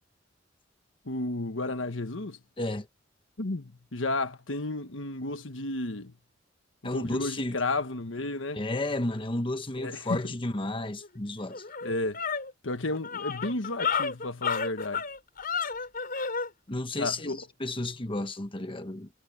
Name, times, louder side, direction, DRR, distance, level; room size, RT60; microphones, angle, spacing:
voice 1, 1.0-2.4 3.4-6.1 6.8-8.6 9.8-10.2 11.8-12.2 12.6-15.0 17.0-17.4, left 2 dB, 85° left, 1.4 m, -32 dB
voice 2, 6.8-7.6 8.5-11.6 16.7-19.1, left 2 dB, 25° left, 1.3 m, -32 dB
sound 1, 11.0-11.1 11.5-16.5, left 6 dB, 50° left, 5.4 m, -31 dB
head